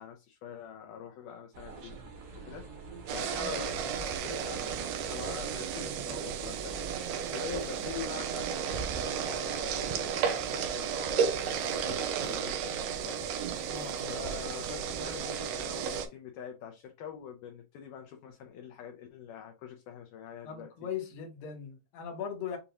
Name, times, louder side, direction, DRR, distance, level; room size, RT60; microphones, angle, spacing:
voice 1, 0.0-2.2 2.5-2.7 3.1-6.8 7.3-13.3 14.1-20.7, left 8 dB, 75° left, 2.0 m, -44 dB
sound 1, 1.5-7.0, right 4 dB, 55° right, 1.7 m, -48 dB
sound 2, 3.1-16.1, right 7 dB, 80° right, 2.2 m, -33 dB
voice 2, 13.7-14.1 20.4-22.6, left 8 dB, 60° left, 2.0 m, -39 dB
6.9 x 2.5 x 2.9 m
omnidirectional pair, 4.2 m